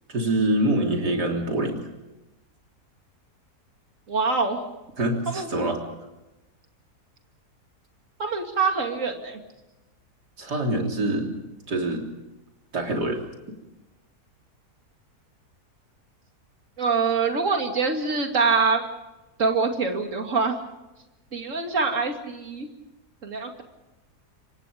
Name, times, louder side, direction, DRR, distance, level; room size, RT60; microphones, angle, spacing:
voice 1, 0.1-1.9 5.0-5.8 10.4-11.4 11.7-12.1 12.7-13.2, right 1 dB, 85° right, 1 dB, 4.1 m, -25 dB
voice 2, 4.1-4.6 5.3-5.5 8.2-9.4 16.8-18.8 19.4-20.6 21.3-22.7 23.2-23.6, right 4 dB, 50° right, 3 dB, 2.9 m, -24 dB
27.5 x 24.5 x 5.2 m, 1.0 s
omnidirectional pair, 1.7 m